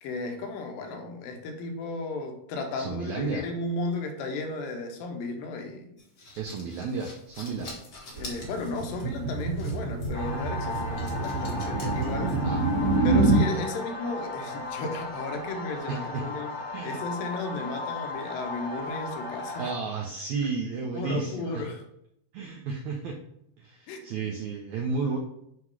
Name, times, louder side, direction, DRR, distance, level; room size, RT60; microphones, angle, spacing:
voice 1, 0.0-5.9 8.2-12.5 13.0-16.5 16.8-19.7 20.9-21.8 23.9-24.1 25.0-25.2, left 3 dB, 80° left, 4 dB, 2.6 m, -34 dB
voice 2, 2.7-3.5 6.4-7.8 12.4-12.6 15.9-16.3 16.7-17.0 19.6-21.6 22.3-23.2 23.6-25.2, right 4 dB, 80° right, 1 dB, 1.7 m, -32 dB
sound 1, 6.0-13.0, left 2 dB, 55° left, 1.0 m, -45 dB
sound 2, 8.2-13.5, right 3 dB, 50° right, 2.9 m, -26 dB
sound 3, 10.1-19.7, left 2 dB, 20° left, 1.1 m, -36 dB
8.0 x 2.9 x 4.7 m, 0.76 s
omnidirectional pair, 4.0 m